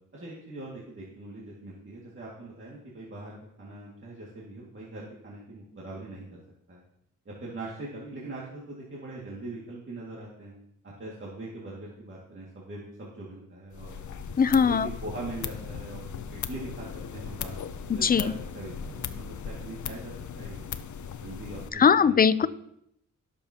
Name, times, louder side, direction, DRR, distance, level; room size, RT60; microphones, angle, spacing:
voice 1, 0.1-6.4 6.7-6.8 7.3-10.5 10.8-14.0 14.5-16.9 17.1-17.6 17.9-20.7 21.2-22.2, right 2 dB, 40° right, -5 dB, 2.0 m, -41 dB
sound 1, 13.7-21.7, left 7 dB, 65° left, 0.7 m, -38 dB
voice 2, 14.4-14.9 17.9-18.2 21.8-22.5, left 6 dB, 30° left, 16 dB, 0.4 m, -20 dB
17.0 x 7.1 x 2.8 m, 0.76 s
wide cardioid pair, 120°, 32 cm